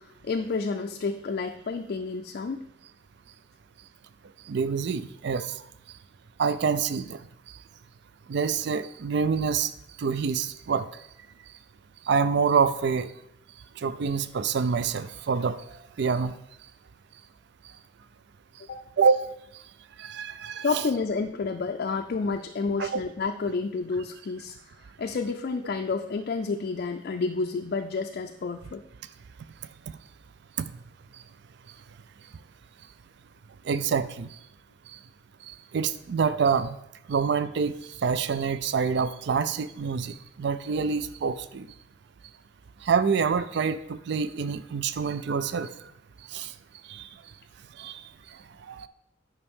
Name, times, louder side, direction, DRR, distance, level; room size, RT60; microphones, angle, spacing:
voice 1, 0.0-2.6 18.6-18.9 20.6-24.6 25.0-28.8, left 4 dB, 50° left, 5 dB, 0.4 m, -30 dB
voice 2, 4.5-5.6 6.4-7.2 8.3-9.7 10.0-10.9 12.1-13.1 13.8-15.6 16.0-16.3 19.0-19.2 20.0-20.8 22.8-22.9 33.7-34.3 35.7-36.8 37.1-37.7 38.0-41.7 42.8-45.7 46.3-46.5 46.9-47.1 47.8-48.0 48.7-48.9, right 5 dB, 60° right, 13 dB, 0.4 m, -26 dB
9.5 x 5.5 x 3.6 m, 0.78 s
head